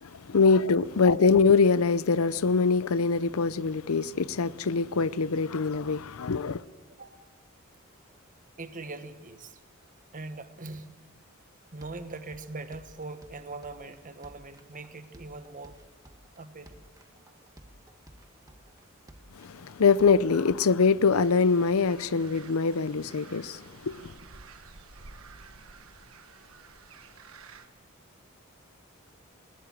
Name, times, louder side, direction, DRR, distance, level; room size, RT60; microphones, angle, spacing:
voice 1, 0.0-6.6 19.3-24.1, left 4 dB, 85° left, 0.6 m, -24 dB
voice 2, 8.6-9.6 10.1-11.0 11.7-15.8 16.3-16.8 17.1-17.2, right 3 dB, 40° right, 1.2 m, -42 dB
sound 1, 11.8-20.6, right 1 dB, 15° right, 1.4 m, -54 dB
sound 2, 21.1-27.7, right 4 dB, 80° right, 1.4 m, -51 dB
20.5 x 19.0 x 7.6 m
head